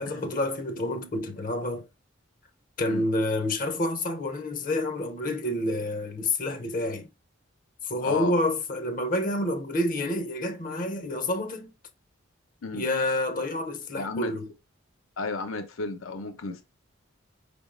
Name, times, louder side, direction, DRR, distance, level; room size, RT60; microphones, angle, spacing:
voice 1, 0.0-1.9 2.8-7.1 7.8-11.7 12.7-14.5, left 1 dB, 40° left, 0.6 m, -28 dB
voice 2, 8.0-8.3 12.6-12.9 13.9-14.3 15.2-16.6, left 3 dB, 90° left, 0.7 m, -33 dB
5.1 x 3.5 x 2.5 m
head